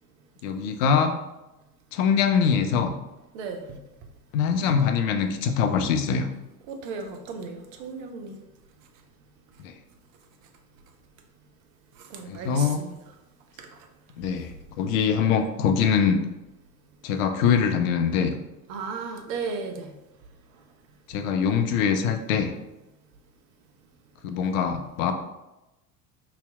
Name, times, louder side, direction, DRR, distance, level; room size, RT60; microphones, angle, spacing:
voice 1, 0.4-1.2 1.9-3.0 4.3-6.3 9.6-9.7 12.3-12.8 14.2-16.2 17.0-18.3 21.1-22.5 24.2-25.1, left 6 dB, 60° left, 7 dB, 0.5 m, -23 dB
voice 2, 3.3-3.8 6.7-8.4 12.1-13.0 13.6-13.7 18.7-19.9, right 4 dB, 55° right, 5 dB, 0.6 m, -35 dB
3.9 x 2.7 x 2.2 m, 0.96 s
figure-of-eight pair, 70°, 46 cm